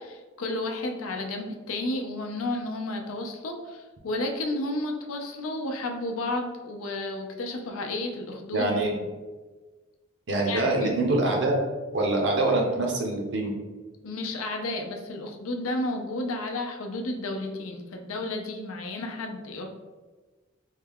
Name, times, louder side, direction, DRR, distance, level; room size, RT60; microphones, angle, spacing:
voice 1, 0.0-8.7 10.5-11.0 14.0-19.7, left 2 dB, 90° left, 4 dB, 0.5 m, -32 dB
voice 2, 8.5-8.9 10.3-11.6 11.9-13.5, right 2 dB, 60° right, 0 dB, 0.7 m, -24 dB
3.2 x 2.3 x 3.5 m, 1.3 s
head